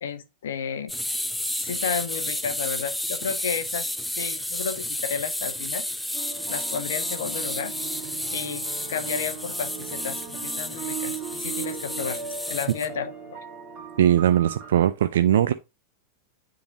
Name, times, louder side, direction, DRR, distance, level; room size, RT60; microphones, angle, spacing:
voice 1, 0.0-0.9 1.6-3.9 4.2-5.8 6.5-7.7 8.3-13.4, left 7 dB, 60° left, 0.8 m, -32 dB
sound 1, 0.9-12.9, left 1 dB, 5° left, 0.5 m, -31 dB
sound 2, 6.1-14.8, right 7 dB, 40° right, 1.7 m, -38 dB
voice 2, 14.0-15.5, right 10 dB, 60° right, 0.4 m, -20 dB
9.7 x 3.9 x 2.7 m
figure-of-eight pair, 90°, 0 cm